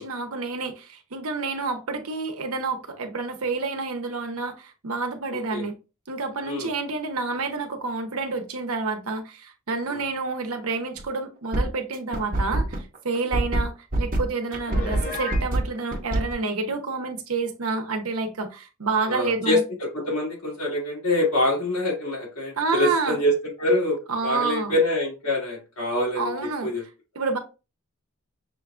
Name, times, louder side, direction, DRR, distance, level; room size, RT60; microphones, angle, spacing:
voice 1, 0.0-5.7 6.1-19.6 22.6-23.2 24.1-24.7 26.2-26.7 27.1-27.4, right 3 dB, 80° right, 0.8 m, -29 dB
voice 2, 5.3-5.7 6.4-6.7 9.9-10.0 13.2-13.3 19.1-26.3 26.6-26.8, left 1 dB, 85° left, 2.2 m, -25 dB
sound 1, 11.0-11.2 11.5-16.3, right 1 dB, 40° right, 0.8 m, -24 dB
Piano, 14.7-15.5, left 3 dB, 45° left, 0.8 m, -33 dB
6.3 x 2.3 x 2.4 m
head